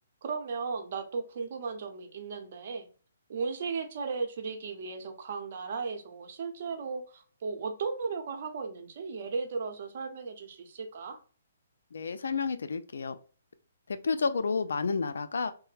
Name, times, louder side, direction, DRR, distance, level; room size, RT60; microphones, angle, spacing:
voice 1, 0.2-2.9 3.3-11.2, right 4 dB, 50° right, 0.6 m, -36 dB
voice 2, 11.9-13.2 13.9-15.5, left 4 dB, 80° left, 0.4 m, -30 dB
3.2 x 2.1 x 3.2 m
hypercardioid pair, 155°, 0 cm